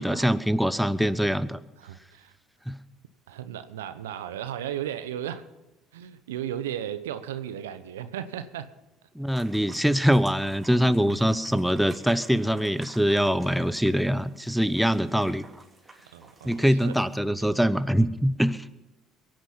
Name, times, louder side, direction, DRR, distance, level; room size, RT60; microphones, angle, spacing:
voice 1, 0.0-1.6 2.7-2.8 9.1-15.4 16.4-18.7, equal, ahead, 13 dB, 0.8 m, -23 dB
voice 2, 1.8-2.3 3.3-5.4 5.9-8.7 16.1-17.0 17.2-17.6, right 10 dB, 90° right, 12 dB, 0.8 m, -35 dB
sound 1, 9.3-17.2, right 3 dB, 25° right, 3.5 m, -51 dB
22.5 x 9.2 x 5.7 m, 1.1 s
hypercardioid pair, 65°, 0 cm